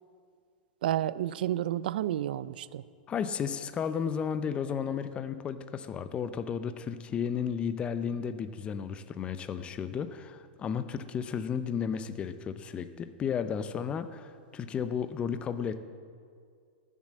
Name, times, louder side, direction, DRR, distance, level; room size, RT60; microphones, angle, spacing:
voice 1, 0.8-2.8, right 12 dB, 70° right, 18 dB, 0.4 m, -30 dB
voice 2, 3.1-15.8, left 7 dB, 20° left, 12 dB, 0.6 m, -33 dB
13.0 x 7.4 x 7.4 m, 2.2 s
hypercardioid pair, 140°, 5 cm